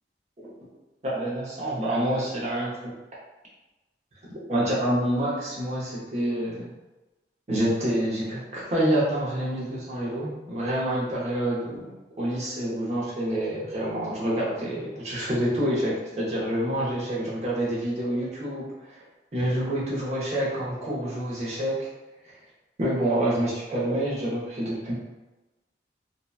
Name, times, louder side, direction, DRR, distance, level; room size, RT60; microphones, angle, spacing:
voice 1, 1.0-2.9 4.3-6.7 7.5-11.9 12.2-18.7 19.3-21.8 22.8-25.0, right 1 dB, 40° right, -6 dB, 0.8 m, -27 dB
2.8 x 2.1 x 2.3 m, 1.1 s
head